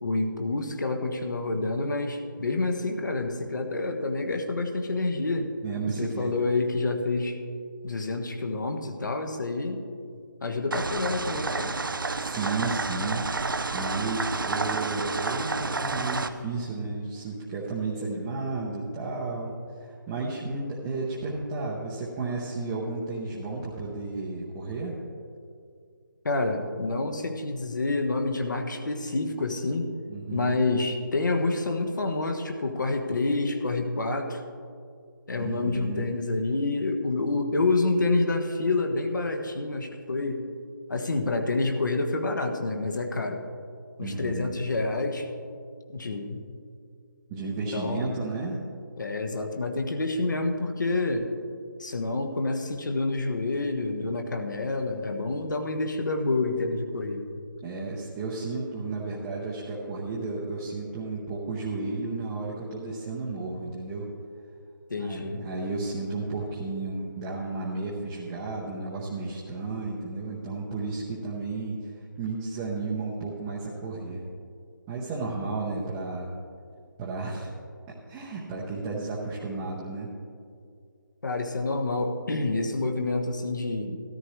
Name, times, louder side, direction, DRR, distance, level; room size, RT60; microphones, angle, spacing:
voice 1, 0.0-5.5 6.0-7.4 7.8-9.8 10.4-11.7 26.2-29.9 30.3-34.4 35.3-40.4 40.9-43.4 44.0-45.3 45.9-46.4 47.7-48.2 49.0-51.3 51.8-57.3 64.9-65.4 81.2-84.0, left 3 dB, 65° left, 4 dB, 1.4 m, -28 dB
voice 2, 5.6-6.3 12.2-13.3 13.7-19.5 19.8-25.0 30.1-30.6 35.4-36.2 44.0-44.5 47.3-48.6 57.6-64.1 65.0-71.9 72.2-74.2 74.9-76.3 77.0-77.5 78.1-80.1, right 3 dB, 10° right, -6 dB, 0.8 m, -33 dB
sound 1, 10.7-16.3, right 3 dB, 75° right, 0.7 m, -30 dB
13.5 x 13.0 x 3.2 m, 2.3 s
figure-of-eight pair, 165°, 11 cm